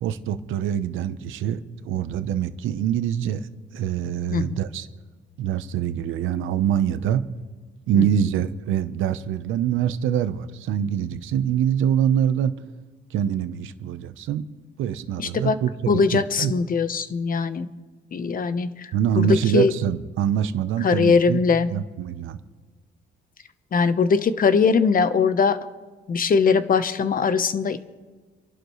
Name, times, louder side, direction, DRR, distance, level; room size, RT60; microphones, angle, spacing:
voice 1, 0.0-3.5 3.7-4.9 5.4-7.2 7.9-12.5 13.1-14.4 14.8-16.5 18.9-21.4 21.7-22.4, right 9 dB, 85° right, 11 dB, 0.9 m, -24 dB
voice 2, 7.9-8.3 15.2-15.6 15.9-17.7 18.1-18.9 19.2-19.7 20.8-21.7 23.7-25.6 26.1-27.8, left 5 dB, 45° left, 12 dB, 1.0 m, -21 dB
28.0 x 11.5 x 3.2 m, 1.3 s
cardioid pair, 90°, 20 cm